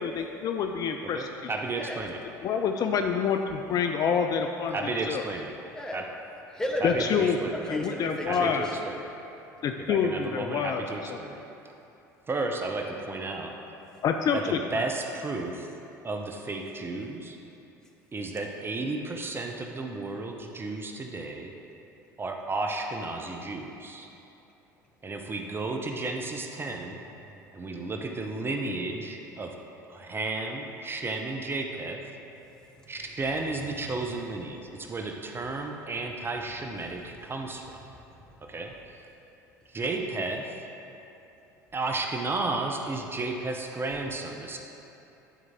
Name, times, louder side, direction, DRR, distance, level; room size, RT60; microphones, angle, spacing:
voice 1, 0.0-1.5 2.4-5.2 6.8-7.4 7.7-8.7 9.6-10.8 11.1-11.2 14.0-14.8, left 7 dB, 40° left, 5 dB, 0.4 m, -27 dB
voice 2, 1.0-2.2 4.7-5.5 5.9-6.1 6.8-7.6 8.3-9.1 9.8-11.4 12.3-13.5 14.3-15.7 16.0-17.4 18.1-21.5 22.2-24.1 25.0-27.0 27.5-29.6 29.9-32.0 32.9-37.8 38.5-38.7 39.7-40.5 41.7-44.6, right 3 dB, 20° right, 2 dB, 0.6 m, -33 dB
voice 3, 1.8-2.1 5.7-6.0 6.5-8.8 32.5-32.9 36.8-37.0 37.9-38.3, equal, 5° left, -1 dB, 1.0 m, -35 dB
10.0 x 4.6 x 3.6 m, 3.0 s
figure-of-eight pair, 65°, 10 cm